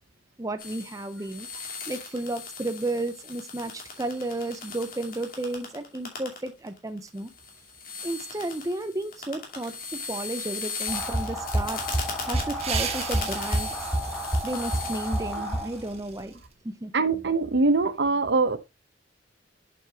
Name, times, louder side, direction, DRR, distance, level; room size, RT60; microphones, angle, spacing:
voice 1, 0.4-7.3 8.0-11.8 12.3-13.7 14.4-16.4 16.6-16.9, right 2 dB, 20° right, 0.7 m, -33 dB
sound 1, 0.6-15.4 15.8-16.2, left 5 dB, 50° left, 2.6 m, -38 dB
sound 2, 10.9-16.0, equal, 5° left, 3.4 m, -29 dB
sound 3, 12.1-16.5, right 6 dB, 35° right, 1.7 m, -37 dB
voice 2, 16.9-18.6, right 3 dB, 60° right, 0.9 m, -23 dB
7.9 x 7.0 x 2.8 m
head